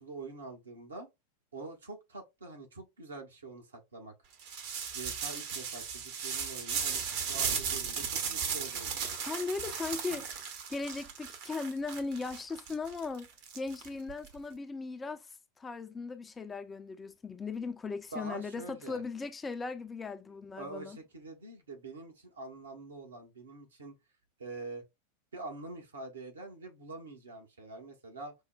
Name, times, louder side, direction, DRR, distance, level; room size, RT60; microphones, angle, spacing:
voice 1, 0.0-1.1 1.5-4.1 4.9-7.0 7.3-9.0 10.1-10.2 18.1-19.0 20.5-23.9 24.4-24.8 25.3-28.3, right 3 dB, 70° right, 1.1 m, -45 dB
sound 1, 4.4-14.3, right 6 dB, 50° right, 0.8 m, -36 dB
voice 2, 9.2-10.3 10.7-13.3 13.5-21.0, left 4 dB, 15° left, 0.4 m, -38 dB
5.3 x 2.1 x 2.2 m
figure-of-eight pair, 90°, 0 cm